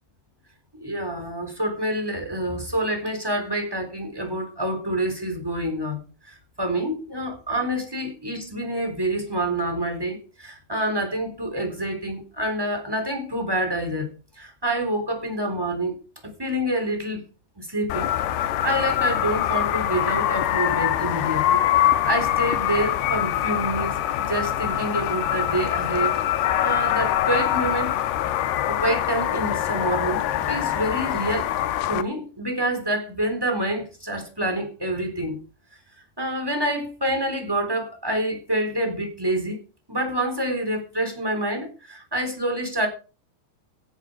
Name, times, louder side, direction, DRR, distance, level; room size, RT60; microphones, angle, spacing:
voice 1, 0.7-14.1 14.4-16.0 16.4-17.2 17.6-18.1 18.4-21.6 22.0-28.0 28.7-31.5 31.9-35.4 36.2-39.6 39.9-42.9, right 1 dB, 5° right, 3.1 m, -27 dB
sound 1, 17.9-32.0, left 12 dB, 75° left, 2.8 m, -24 dB
17.5 x 8.0 x 5.2 m
omnidirectional pair, 4.9 m